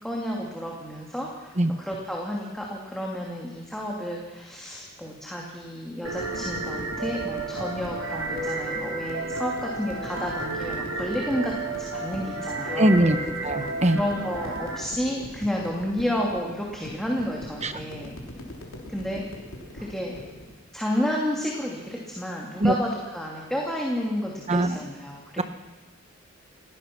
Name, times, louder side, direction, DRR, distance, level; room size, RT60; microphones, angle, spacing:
voice 1, 0.0-13.0 13.9-18.2 18.9-19.2 19.7-20.2 20.7-25.4, equal, ahead, -3 dB, 2.6 m, -31 dB
sound 1, 6.0-14.8, right 2 dB, 85° right, 3.2 m, -32 dB
sound 2, 6.2-20.5, left 1 dB, 80° left, 3.3 m, -42 dB
voice 2, 12.8-14.0 17.6-17.7 22.6-22.7 24.5-24.8 25.4-25.5, right 1 dB, 35° right, 9 dB, 1.2 m, -21 dB
29.5 x 16.5 x 6.0 m, 1.3 s
head